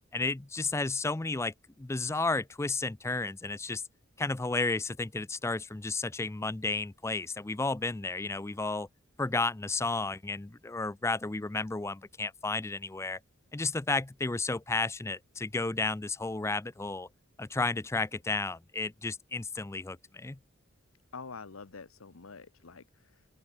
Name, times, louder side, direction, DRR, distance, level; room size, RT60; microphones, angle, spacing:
voice 1, 0.1-3.8 4.2-8.9 9.2-13.2 13.5-17.1 17.4-20.4, left 3 dB, 15° left, 0.4 m, -32 dB
voice 2, 21.1-23.4, left 4 dB, 90° left, 1.0 m, -47 dB
open air
head